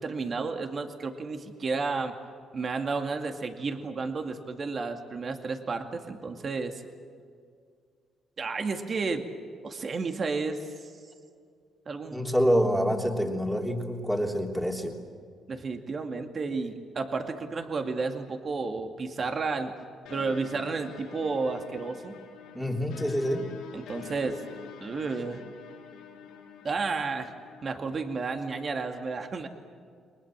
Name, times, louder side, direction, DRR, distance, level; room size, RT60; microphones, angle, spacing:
voice 1, 0.0-2.1 2.5-6.8 8.4-9.2 9.6-10.9 11.9-12.2 15.5-19.7 20.1-22.2 23.7-24.4 24.8-25.4 26.6-27.3 27.6-29.5, right 4 dB, 45° right, 5 dB, 2.2 m, -32 dB
voice 2, 12.1-15.0 22.5-23.5, equal, 5° right, 1 dB, 3.3 m, -27 dB
sound 1, 20.1-27.7, left 7 dB, 90° left, 5.9 m, -46 dB
29.5 x 22.5 x 7.5 m, 2.2 s
cardioid pair, 90°, 0 cm